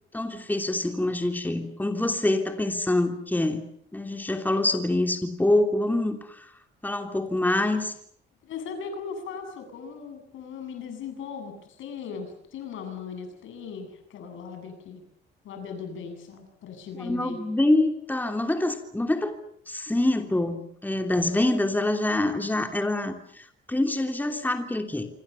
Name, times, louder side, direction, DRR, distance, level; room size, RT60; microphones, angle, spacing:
voice 1, 0.1-3.6 3.9-6.5 6.8-7.9 17.0-19.3 19.7-25.1, left 1 dB, 10° left, 5 dB, 3.1 m, -25 dB
voice 2, 8.4-15.0 15.4-17.4, left 6 dB, 80° left, 7 dB, 7.9 m, -38 dB
27.0 x 26.0 x 7.0 m, 0.66 s
cardioid pair, 90°, 20 cm